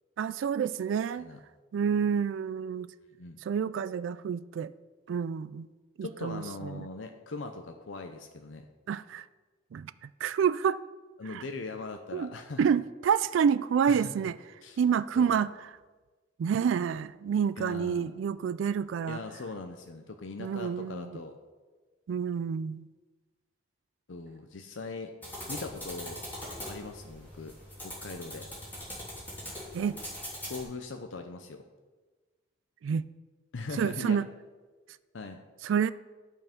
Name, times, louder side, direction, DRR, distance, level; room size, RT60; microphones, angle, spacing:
voice 1, 0.2-1.3 1.7-2.9 3.4-4.7 5.1-5.7 6.0-6.9 8.9-9.3 9.7-10.8 11.3-11.4 12.1-12.3 12.6-14.4 14.8-15.7 16.4-19.2 20.4-21.2 22.1-22.9 29.7-30.0 32.8-33.1 33.8-34.3 35.6-35.9, right 7 dB, 85° right, 0.3 m, -28 dB
voice 2, 6.0-8.6 11.2-12.6 13.9-14.1 14.6-14.8 15.2-15.4 17.6-18.1 19.1-21.4 24.1-25.1 25.5-26.2 26.7-27.5 27.8-28.5 30.4-31.6 33.5-34.2 35.1-35.4, left 3 dB, 85° left, 0.7 m, -40 dB
sound 1, 25.2-30.6, equal, 10° left, 2.9 m, -41 dB
11.5 x 5.6 x 5.2 m
head